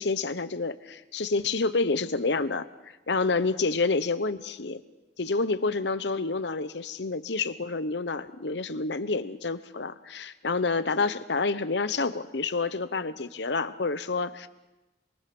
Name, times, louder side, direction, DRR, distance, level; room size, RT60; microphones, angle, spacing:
voice 1, 0.0-2.7 3.1-4.8 5.2-14.5, left 3 dB, 70° left, 12 dB, 0.9 m, -28 dB
27.5 x 23.0 x 6.1 m, 1.0 s
head